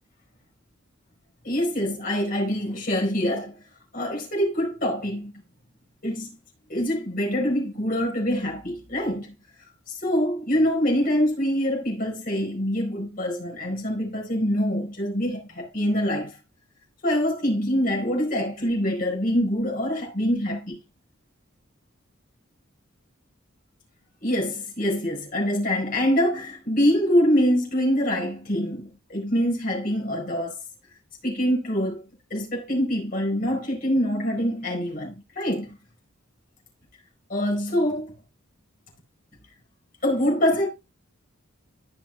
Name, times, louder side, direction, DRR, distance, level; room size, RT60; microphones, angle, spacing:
voice 1, 1.4-3.5 3.9-5.3 6.0-6.3 6.7-9.3 10.0-16.3 17.0-20.8 24.2-30.6 31.2-32.0 32.3-35.7 37.3-38.1 40.0-40.7, equal, 45° left, 4.6 m, -25 dB
15.0 x 6.2 x 2.3 m
head